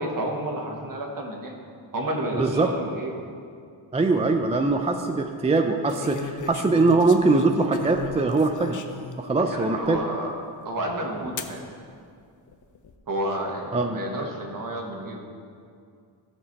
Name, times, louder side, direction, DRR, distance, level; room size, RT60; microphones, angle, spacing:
voice 1, 0.0-1.6 1.9-3.2 9.4-10.4 10.6-11.7 13.1-15.2, right 1 dB, 50° right, 1 dB, 1.4 m, -30 dB
voice 2, 2.3-2.7 3.9-8.8 9.2-10.0 13.7-14.0, right 3 dB, 15° right, 5 dB, 0.3 m, -22 dB
sound 1, 4.2-4.6 5.9-9.2 9.8-9.9 11.4-11.6 12.5-13.0, left 4 dB, 45° left, 0.6 m, -36 dB
15.0 x 5.3 x 4.1 m, 2.3 s
wide cardioid pair, 140°, 42 cm